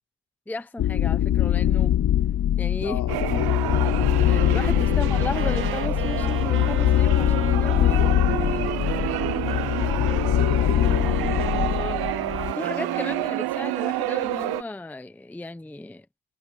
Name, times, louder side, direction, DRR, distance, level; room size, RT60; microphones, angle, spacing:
voice 1, 0.5-2.0 2.6-3.0 3.3-3.4 4.3-8.0 8.3-9.1 11.8-12.2 12.5-16.1, left 2 dB, 5° left, 0.7 m, -34 dB
sound 1, 0.8-12.5, left 12 dB, 45° left, 0.6 m, -22 dB
voice 2, 1.8-2.3 2.8-3.7 4.9-5.1 7.8-8.2 10.2-11.2, left 11 dB, 70° left, 4.9 m, -37 dB
sound 2, 3.1-14.6, right 16 dB, 85° right, 0.6 m, -30 dB
Wind instrument woodwind instrument, 4.1-10.3 10.8-13.4, right 6 dB, 35° right, 1.6 m, -35 dB
cardioid pair, 140°, 37 cm